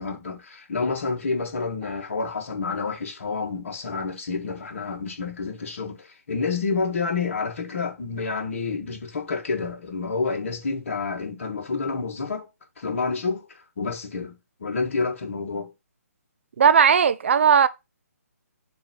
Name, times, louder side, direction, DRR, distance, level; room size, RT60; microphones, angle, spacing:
voice 1, 0.0-12.5 12.8-14.3 14.6-15.7, left 4 dB, 55° left, 2.0 m, -29 dB
voice 2, 16.6-17.7, right 7 dB, 50° right, 0.5 m, -17 dB
6.8 x 3.0 x 5.7 m
figure-of-eight pair, 135°, 8 cm